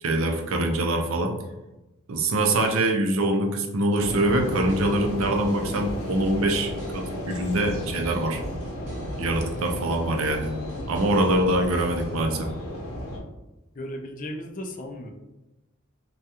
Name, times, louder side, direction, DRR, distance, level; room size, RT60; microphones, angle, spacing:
voice 1, 0.0-1.3 2.1-8.4 9.2-10.5 10.9-12.5, right 1 dB, 65° right, 3 dB, 0.5 m, -24 dB
sound 1, 3.9-12.2, equal, 35° right, 0.8 m, -45 dB
sound 2, 4.0-13.2, equal, 90° left, 0.8 m, -33 dB
voice 2, 13.7-15.1, left 1 dB, 40° left, 3 dB, 0.4 m, -35 dB
3.4 x 2.3 x 2.8 m, 1.0 s
head